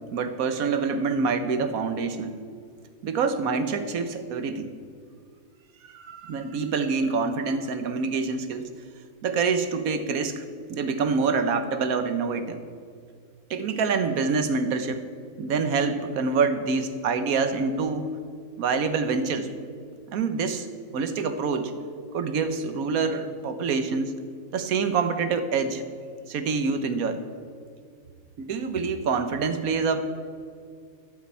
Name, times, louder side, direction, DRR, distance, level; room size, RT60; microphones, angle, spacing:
voice 1, 0.1-2.4 3.0-4.7 5.8-8.7 9.2-10.4 10.7-12.6 13.5-15.0 15.4-18.1 18.6-19.5 20.1-20.7 20.9-21.7 22.1-24.2 24.5-25.8 26.3-27.2 28.4-30.0, right 4 dB, 85° right, 9 dB, 1.4 m, -26 dB
12.5 x 7.2 x 8.5 m, 2.2 s
omnidirectional pair, 1.5 m